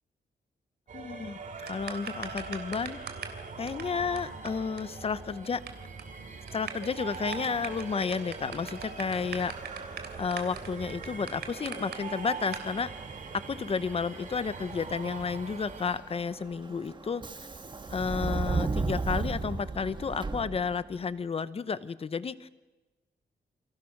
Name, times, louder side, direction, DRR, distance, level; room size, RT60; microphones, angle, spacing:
voice 1, 0.9-3.0 3.6-5.6 6.5-9.5 10.2-12.9 13.3-17.2 17.9-22.5, left 5 dB, 35° left, 15 dB, 0.9 m, -32 dB
sound 1, 0.9-16.0, right 4 dB, 45° right, 3.0 m, -42 dB
sound 2, 1.7-3.4 3.7-3.8 4.2-4.3 4.5-4.6 4.8-4.9 5.1-5.7 6.0-6.1 6.5-12.0 12.5-12.7, right 7 dB, 70° right, 3.2 m, -40 dB
Subway metro underground, 9.1-21.0, right 3 dB, 25° right, 1.6 m, -37 dB
29.0 x 24.5 x 6.1 m, 1.2 s
wide cardioid pair, 160°, 18 cm